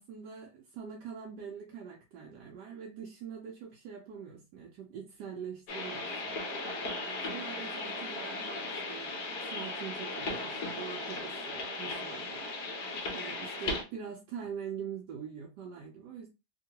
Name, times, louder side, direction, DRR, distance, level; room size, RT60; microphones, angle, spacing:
voice 1, 0.0-9.2 9.4-16.3, right 7 dB, 90° right, -1 dB, 1.3 m, -44 dB
sound 1, 5.7-13.8, left 2 dB, 80° left, 1.4 m, -37 dB
3.6 x 2.2 x 2.8 m, 0.27 s
omnidirectional pair, 1.8 m